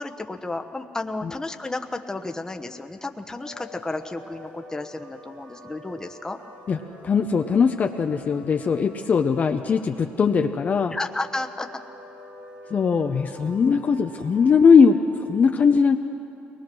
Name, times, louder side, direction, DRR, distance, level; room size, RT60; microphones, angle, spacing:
voice 1, 0.0-6.4 10.9-11.7, left 2 dB, 15° left, 5 dB, 1.1 m, -32 dB
sound 1, 3.4-15.0, equal, 85° right, 6.5 m, -46 dB
voice 2, 7.0-11.0 12.7-16.0, left 5 dB, 40° left, 5 dB, 0.7 m, -20 dB
22.5 x 20.0 x 6.2 m, 2.8 s
cardioid pair, 100°, 4 cm